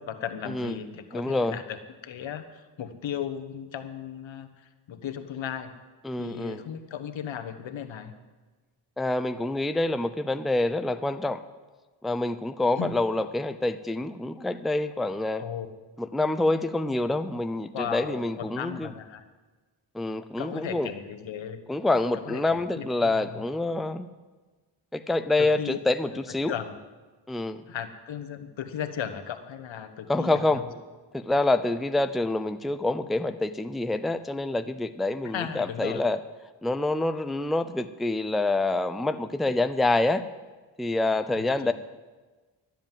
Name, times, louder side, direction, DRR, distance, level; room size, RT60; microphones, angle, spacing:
voice 1, 0.0-5.7 6.1-8.1 12.8-13.0 15.4-15.7 17.7-19.2 20.4-21.6 22.1-23.4 25.4-25.8 26.5-26.8 27.7-30.7 35.2-36.0 41.3-41.7, left 8 dB, 75° left, 8 dB, 1.3 m, -36 dB
voice 2, 1.1-1.6 6.0-6.6 9.0-11.4 12.0-15.4 16.0-18.9 19.9-20.9 21.7-24.1 24.9-26.5 27.3-27.6 30.1-30.6 31.1-36.2 36.6-40.2 40.8-41.7, left 2 dB, ahead, 9 dB, 0.6 m, -27 dB
12.5 x 7.7 x 9.1 m, 1.3 s
cardioid pair, 70°, 46 cm